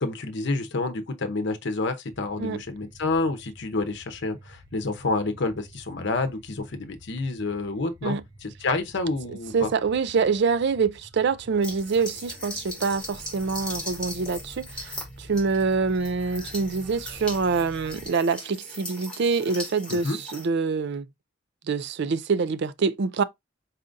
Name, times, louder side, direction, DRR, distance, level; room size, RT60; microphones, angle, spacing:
voice 1, 0.0-8.2 8.4-9.7 19.9-20.2, left 3 dB, 55° left, 0.8 m, -28 dB
sound 1, 2.1-18.1, equal, 10° right, 1.8 m, -48 dB
voice 2, 9.3-21.1 21.7-23.2, right 5 dB, 55° right, 0.4 m, -25 dB
sound 2, 11.6-20.5, left 2 dB, 5° left, 1.7 m, -39 dB
4.1 x 3.8 x 2.5 m
head